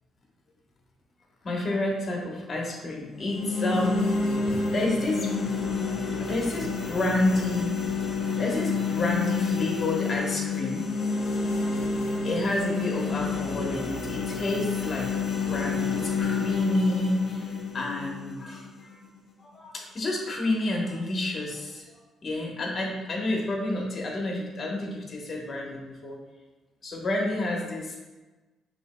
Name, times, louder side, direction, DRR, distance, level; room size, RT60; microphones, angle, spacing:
voice 1, 1.4-4.1 4.5-5.3 6.2-7.7 8.4-10.8 11.6-11.8 12.2-15.1 15.4-19.0 19.4-21.9 22.2-26.2 26.8-28.0, left 1 dB, 40° left, -1 dB, 1.1 m, -29 dB
sound 1, 3.1-19.2, left 4 dB, 65° left, 0.8 m, -29 dB
6.1 x 2.9 x 2.2 m, 1.2 s
cardioid pair, 90°, 0 cm